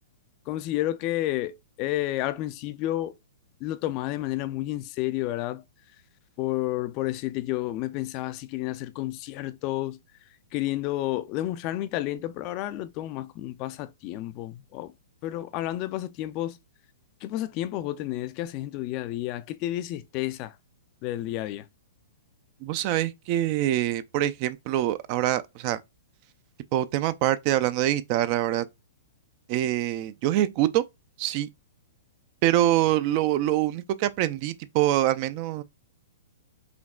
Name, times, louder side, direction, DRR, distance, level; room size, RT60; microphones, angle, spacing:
voice 1, 0.5-3.1 3.6-5.6 6.4-10.0 10.5-14.9 15.2-16.6 17.2-20.5 21.0-21.6, left 15 dB, 35° left, 0.3 m, -31 dB
voice 2, 22.6-25.8 26.7-28.6 29.5-30.8 31.2-31.5 32.4-35.6, right 13 dB, 40° right, 0.4 m, -25 dB
5.0 x 2.7 x 2.4 m
figure-of-eight pair, 115°, 0 cm